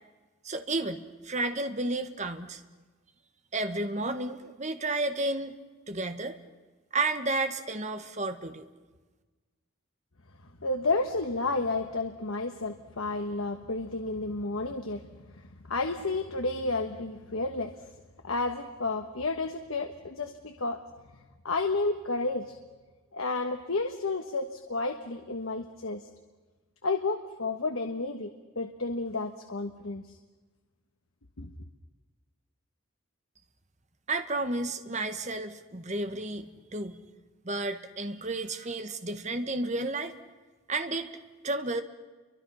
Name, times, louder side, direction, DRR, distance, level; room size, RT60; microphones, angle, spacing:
voice 1, 0.4-2.6 3.5-5.5 5.9-6.4 6.9-8.6 34.1-37.0 37.4-40.1 40.7-41.1 41.4-41.8, right 2 dB, 35° right, 8 dB, 1.5 m, -32 dB
voice 2, 10.6-15.1 15.7-17.8 18.2-20.8 21.4-22.6 23.1-26.0 26.8-28.3 28.5-30.2 31.4-31.5, left 3 dB, 80° left, 6 dB, 1.4 m, -31 dB
29.5 x 24.0 x 5.7 m, 1.3 s
head